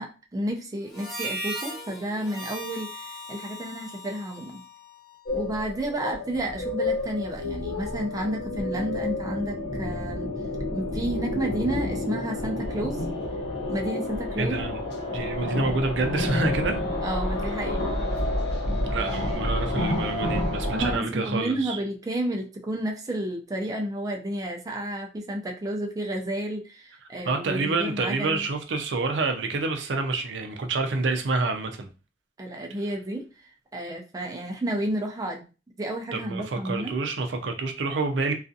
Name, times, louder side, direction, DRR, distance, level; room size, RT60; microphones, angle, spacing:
voice 1, 0.0-4.6 5.3-10.3 10.7-13.1 13.7-14.7 17.0-17.8 20.6-28.4 32.4-33.3 33.7-35.5 35.8-36.9, right 1 dB, 20° right, 0.4 m, -31 dB
Harmonica, 0.9-5.5, right 1 dB, ahead, 0.8 m, -38 dB
sound 1, 5.3-21.0, left 1 dB, 65° left, 0.7 m, -29 dB
voice 2, 14.4-14.8 15.1-16.8 18.9-21.8 27.2-31.9 36.1-38.3, right 3 dB, 85° right, 0.5 m, -28 dB
2.4 x 2.3 x 2.6 m
head